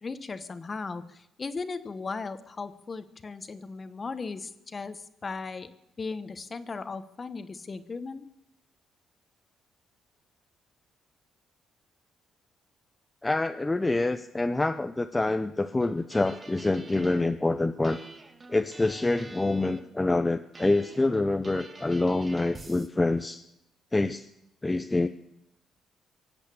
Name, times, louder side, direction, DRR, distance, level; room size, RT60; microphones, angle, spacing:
voice 1, 0.0-5.7 6.0-8.3, left 4 dB, 35° left, 11 dB, 1.1 m, -37 dB
voice 2, 13.2-18.0 18.5-23.4 23.9-24.3 24.6-25.1, left 2 dB, 15° left, 7 dB, 0.6 m, -26 dB
sound 1, 15.8-17.3 17.8-19.9 20.5-22.9, right 3 dB, 30° right, 1.7 m, -47 dB
24.0 x 8.2 x 6.8 m, 0.83 s
cardioid pair, 90°, 0 cm